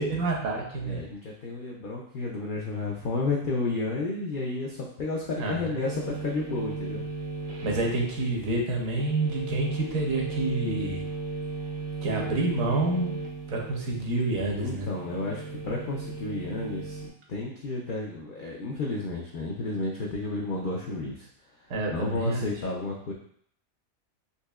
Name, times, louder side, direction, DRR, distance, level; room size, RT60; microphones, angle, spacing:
voice 1, 0.0-1.0 5.4-5.8 7.6-11.0 12.0-13.1 13.5-14.9 21.7-22.5, right 2 dB, 75° right, -1 dB, 1.2 m, -28 dB
voice 2, 0.8-7.0 14.6-17.0 17.3-21.3 21.9-23.1, left 3 dB, 80° left, -2 dB, 0.4 m, -31 dB
sound 1, 5.8-17.1, right 3 dB, 90° right, 1.2 m, -36 dB
4.2 x 2.7 x 2.3 m, 0.64 s
omnidirectional pair, 1.5 m